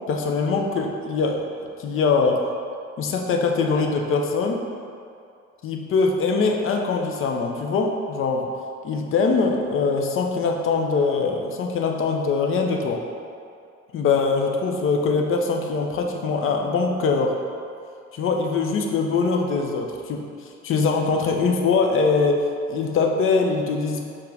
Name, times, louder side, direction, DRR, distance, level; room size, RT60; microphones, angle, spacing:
voice 1, 0.1-1.5 1.8-2.4 3.0-4.6 5.6-8.5 8.8-13.0 13.9-17.4 18.1-20.3 20.6-24.0, left 4 dB, 35° left, 2 dB, 0.5 m, -22 dB
4.4 x 3.6 x 3.3 m, 2.4 s
figure-of-eight pair, 50°, 38 cm